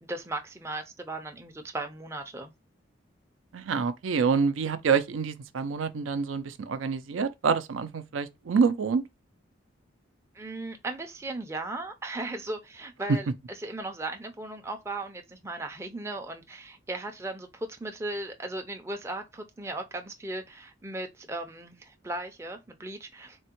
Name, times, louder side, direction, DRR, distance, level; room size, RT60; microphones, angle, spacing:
voice 1, 0.0-2.5 10.3-23.4, right 2 dB, 15° right, 0.4 m, -37 dB
voice 2, 3.5-9.0 13.1-13.2, right 5 dB, 85° right, 0.4 m, -26 dB
3.5 x 2.1 x 2.8 m
head